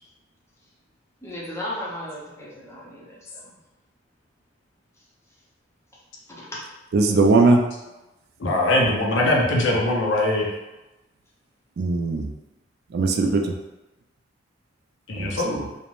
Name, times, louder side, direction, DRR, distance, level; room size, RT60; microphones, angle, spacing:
voice 1, 1.2-3.2 6.3-6.5, left 1 dB, 15° left, -6 dB, 0.6 m, -35 dB
voice 2, 6.9-7.6 11.8-12.3 12.9-13.4 15.2-15.7, right 3 dB, 55° right, 3 dB, 0.3 m, -19 dB
voice 3, 8.4-10.5 15.1-15.6, left 1 dB, 75° left, -1 dB, 0.6 m, -21 dB
2.5 x 2.0 x 3.0 m, 1.0 s
head